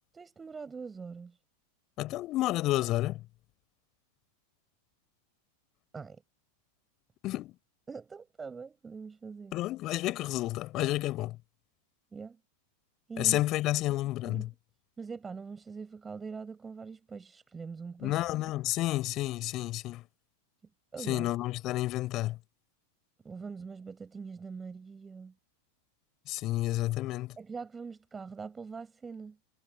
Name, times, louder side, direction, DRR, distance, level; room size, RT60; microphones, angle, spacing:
voice 1, 0.1-1.4 5.9-6.2 7.9-9.6 12.1-12.4 13.1-13.4 14.2-14.5 15.0-18.4 20.9-21.3 23.2-25.3 27.4-29.4, right 5 dB, 15° right, 7.0 m, -43 dB
voice 2, 2.0-3.2 7.2-7.5 9.5-11.4 13.2-14.5 18.0-20.0 21.1-22.4 26.3-27.4, left 16 dB, 35° left, 4.3 m, -30 dB
figure-of-eight pair, 90°, 0 cm